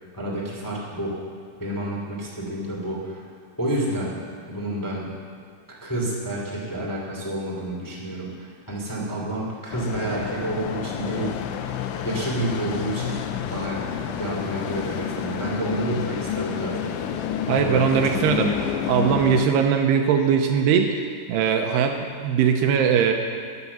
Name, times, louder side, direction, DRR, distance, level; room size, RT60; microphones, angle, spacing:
voice 1, 0.1-1.2 1.6-3.2 3.6-4.2 4.4-5.1 5.8-11.3 12.0-13.8 14.2-16.9 17.5-18.5, right 1 dB, 10° left, -4 dB, 1.1 m, -29 dB
sound 1, 9.7-19.5, left 8 dB, 85° left, 3.1 m, -29 dB
voice 2, 17.5-18.5 18.9-21.0 21.3-23.1, right 7 dB, 80° right, 4 dB, 2.6 m, -20 dB
13.5 x 9.7 x 7.1 m, 2.2 s
omnidirectional pair, 5.2 m